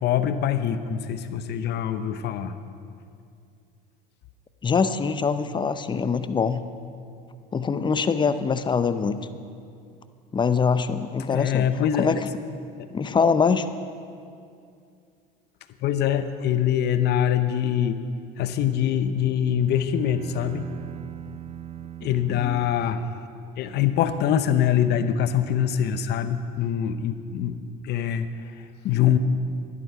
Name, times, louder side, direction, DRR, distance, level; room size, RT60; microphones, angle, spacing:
voice 1, 0.0-2.6 11.3-12.2 15.8-18.0 18.4-20.7 22.0-23.1 23.6-29.2, left 9 dB, 50° left, 11 dB, 0.8 m, -24 dB
voice 2, 4.6-6.6 7.5-9.2 10.3-11.7 12.0-12.2 12.9-13.7 22.3-22.6, left 5 dB, 20° left, 12 dB, 0.6 m, -23 dB
Bowed string instrument, 18.9-23.7, right 10 dB, 30° right, 0.5 m, -41 dB
11.0 x 10.5 x 5.7 m, 2.4 s
supercardioid pair, 90°, 21 cm